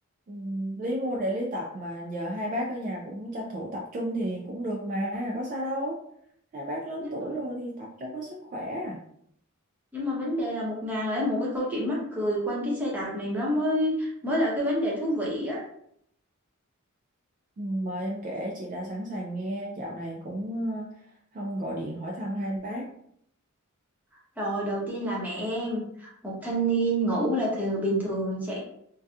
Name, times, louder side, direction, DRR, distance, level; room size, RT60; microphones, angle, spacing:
voice 1, 0.3-6.0 6.5-9.0 17.6-21.0 21.3-22.9, equal, 40° right, -1 dB, 0.3 m, -32 dB
voice 2, 9.9-15.6 24.4-28.6, equal, 10° right, -5 dB, 0.7 m, -28 dB
2.6 x 2.3 x 2.3 m, 0.70 s
head